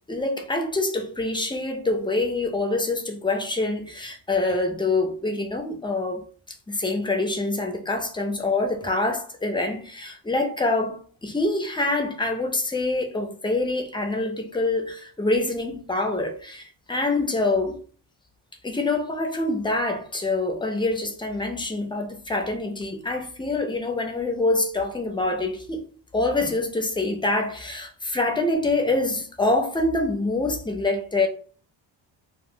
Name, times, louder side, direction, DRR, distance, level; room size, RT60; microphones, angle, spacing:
voice 1, 0.1-6.3 6.7-17.8 18.6-25.9 26.1-31.3, left 2 dB, 10° left, 0.4 m, -25 dB
2.2 x 2.1 x 3.6 m
cardioid pair, 120°, 46 cm